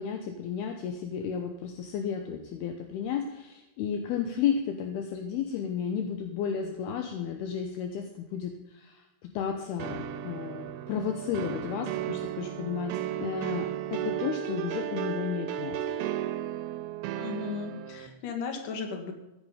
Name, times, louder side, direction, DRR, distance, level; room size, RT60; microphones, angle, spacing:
voice 1, 0.0-15.8, left 7 dB, 75° left, 5 dB, 2.7 m, -33 dB
sound 1, 9.8-18.1, right 10 dB, 80° right, 2.6 m, -34 dB
voice 2, 17.1-19.1, left 5 dB, 55° left, 4 dB, 2.9 m, -36 dB
15.5 x 11.0 x 5.0 m, 0.98 s
omnidirectional pair, 5.0 m